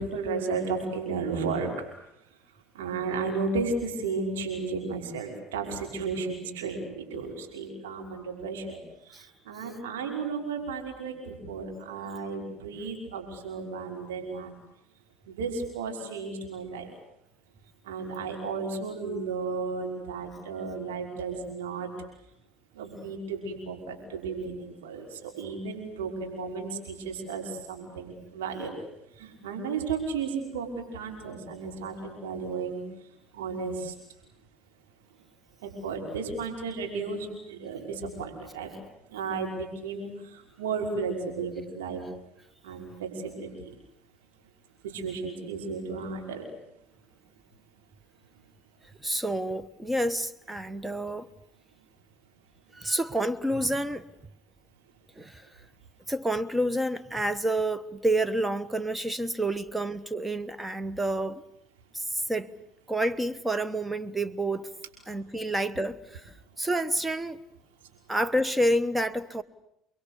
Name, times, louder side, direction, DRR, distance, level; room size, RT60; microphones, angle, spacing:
voice 1, 0.0-1.8 2.7-14.5 15.3-16.9 17.8-21.9 22.7-28.9 29.2-33.9 35.6-38.8 39.1-42.0 42.6-43.7 44.8-46.5, right 4 dB, 80° right, 5.7 m, -34 dB
voice 2, 49.0-51.3 52.7-54.0 55.2-55.5 56.1-61.4 61.9-62.5 62.9-64.7 65.1-67.4 68.1-69.4, right 1 dB, 10° right, 1.3 m, -29 dB
29.5 x 23.0 x 8.4 m
hypercardioid pair, 65°, 0 cm